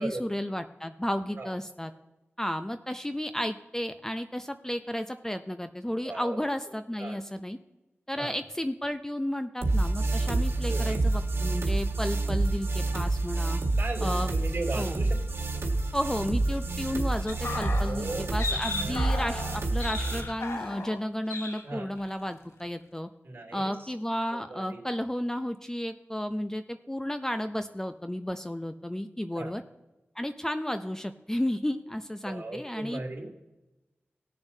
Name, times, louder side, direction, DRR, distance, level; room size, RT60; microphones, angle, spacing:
voice 1, 0.0-1.9 2.4-7.6 8.1-13.6 14.0-14.3 14.7-15.0 15.9-23.1 23.5-29.6 30.2-33.0, equal, 10° left, 9 dB, 0.5 m, -33 dB
voice 2, 6.0-6.4 7.0-7.2 8.2-8.4 10.5-11.0 13.7-15.2 17.7-18.2 18.5-19.0 21.6-21.9 23.2-23.9 24.3-24.8 29.3-29.5 32.2-33.4, right 2 dB, 55° right, 0 dB, 2.9 m, -37 dB
sound 1, 9.6-20.2, right 2 dB, 85° right, 1.6 m, -28 dB
sound 2, 17.3-21.0 21.3-21.6 22.0-22.2, left 3 dB, 85° left, 1.1 m, -35 dB
19.0 x 7.0 x 2.7 m, 1.0 s
wide cardioid pair, 95°, 4 cm